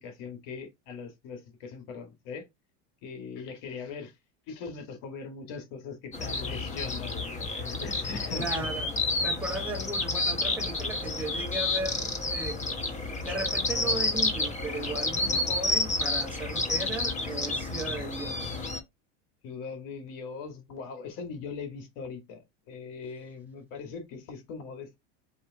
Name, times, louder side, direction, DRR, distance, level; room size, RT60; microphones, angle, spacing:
voice 1, 0.0-2.4 3.0-4.1 4.5-8.7 15.3-15.6 19.4-25.0, left 5 dB, 65° left, 1.9 m, -40 dB
sound 1, 6.1-18.8, left 2 dB, 20° left, 1.1 m, -30 dB
voice 2, 8.3-8.9 9.2-18.7, right 2 dB, 5° right, 1.1 m, -37 dB
4.5 x 3.2 x 3.4 m
supercardioid pair, 115°, 35 cm